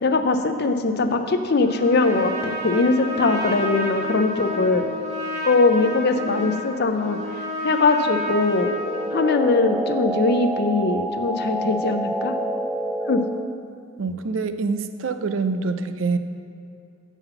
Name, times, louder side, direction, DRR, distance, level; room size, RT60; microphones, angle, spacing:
voice 1, 0.0-4.9 5.4-7.2 7.6-8.7 9.1-12.4 13.1-13.2, left 3 dB, 55° left, 8 dB, 0.6 m, -21 dB
Trumpet, 1.6-9.2, left 1 dB, 35° right, 1.3 m, -30 dB
sound 1, 8.7-13.6, right 1 dB, 5° right, 0.3 m, -28 dB
voice 2, 14.0-16.2, right 4 dB, 75° right, 10 dB, 0.5 m, -25 dB
7.1 x 5.8 x 6.8 m, 2.4 s
head